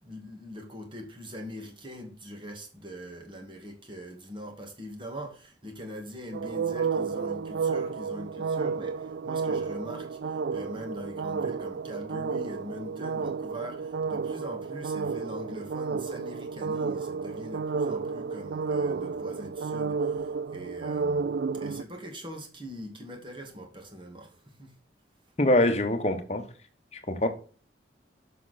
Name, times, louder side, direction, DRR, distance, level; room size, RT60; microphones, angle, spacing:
voice 1, 0.0-21.3 21.5-24.7, equal, 25° right, 2.0 m, -42 dB
sound 1, 6.3-21.8, right 5 dB, 65° right, 0.3 m, -31 dB
voice 2, 25.4-26.4 27.1-27.3, left 1 dB, 35° left, 1.2 m, -24 dB
7.2 x 6.0 x 4.2 m
head